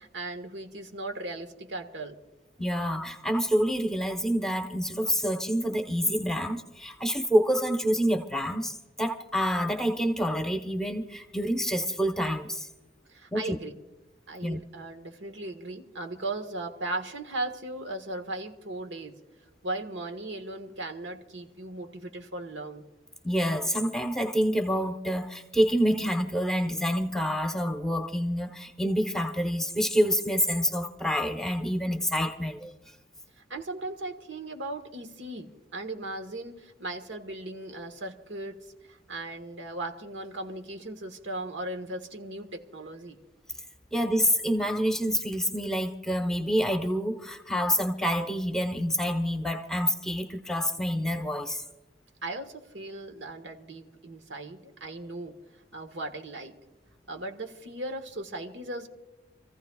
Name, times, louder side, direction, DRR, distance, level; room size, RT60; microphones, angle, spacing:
voice 1, 0.0-2.2 13.1-13.7 14.3-19.2 19.6-22.9 33.4-38.6 38.8-43.2 52.2-55.3 55.7-56.5 57.1-58.9, right 2 dB, 80° right, 6 dB, 1.5 m, -37 dB
voice 2, 2.6-12.7 13.3-13.6 14.4-14.6 23.2-32.7 43.9-51.6, equal, 5° left, 5 dB, 0.9 m, -27 dB
28.5 x 15.0 x 2.4 m, 1.0 s
head